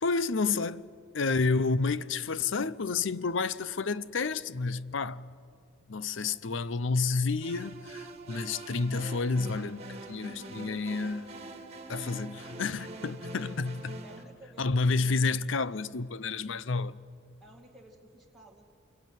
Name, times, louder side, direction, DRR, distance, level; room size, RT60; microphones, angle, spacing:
voice 1, 0.0-0.9 1.1-5.3 5.9-11.3 11.9-14.0 14.6-17.0, left 4 dB, 65° left, 0.6 m, -30 dB
sound 1, 7.4-14.2, right 2 dB, 30° right, 2.2 m, -44 dB
voice 2, 12.1-12.4 14.0-15.0 17.4-18.6, right 1 dB, ahead, 2.1 m, -55 dB
27.5 x 22.5 x 9.2 m
head